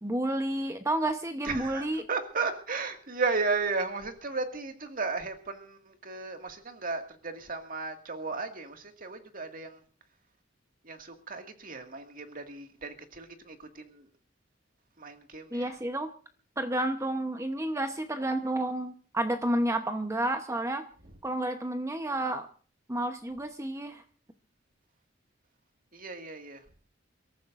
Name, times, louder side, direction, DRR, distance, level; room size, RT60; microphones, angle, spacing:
voice 1, 0.0-2.0 15.5-16.1 16.6-20.8 21.2-22.5 22.9-24.0, right 1 dB, 15° right, 7 dB, 0.9 m, -30 dB
voice 2, 1.5-5.8 6.0-8.8 9.0-9.7 10.9-11.0 11.3-13.6 15.0-15.6 26.0-26.6, right 4 dB, 45° right, 5 dB, 2.0 m, -34 dB
29.0 x 14.0 x 2.5 m, 0.41 s
head